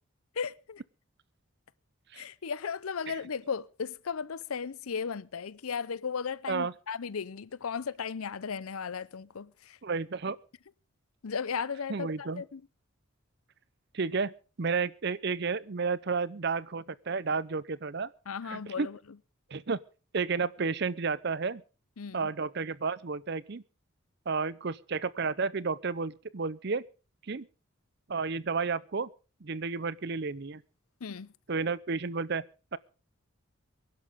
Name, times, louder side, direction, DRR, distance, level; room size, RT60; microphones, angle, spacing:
voice 1, 0.4-0.8 2.1-9.8 11.2-12.6 18.3-19.0 22.0-22.3 31.0-31.3, left 6 dB, 85° left, 0.6 m, -36 dB
voice 2, 9.8-10.4 11.9-12.4 13.9-14.3 14.6-18.1 18.4-18.9 19.5-19.8 20.1-21.6 22.1-23.6 24.3-26.8 27.3-27.5 28.1-29.1 29.4-30.6 31.5-32.4 32.7-32.8, right 4 dB, 50° right, 0.6 m, -31 dB
23.5 x 11.5 x 3.6 m
head